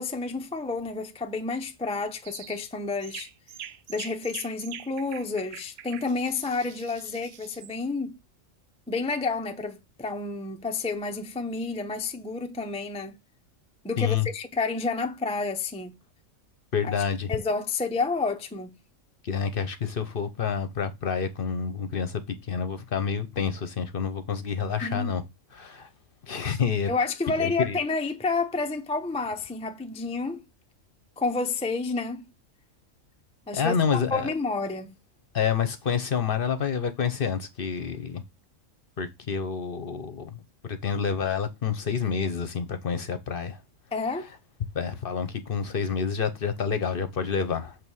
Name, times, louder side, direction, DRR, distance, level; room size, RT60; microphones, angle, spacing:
voice 1, 0.0-3.3 3.9-8.2 8.9-13.1 13.8-15.9 16.8-16.9 17.3-18.7 24.8-25.1 26.9-30.4 31.2-32.3 33.5-33.8 34.1-34.9 43.9-44.3, left 3 dB, 10° left, 0.4 m, -30 dB
sound 1, 2.2-2.6 3.0-7.7, right 10 dB, 65° right, 0.7 m, -44 dB
voice 2, 14.0-14.3 16.7-17.3 19.2-25.2 25.5-25.9 26.3-26.9 27.4-27.8 33.5-34.3 35.3-38.2 39.0-43.6 44.7-47.8, left 6 dB, 50° left, 0.9 m, -28 dB
7.2 x 3.2 x 6.2 m
omnidirectional pair, 1.4 m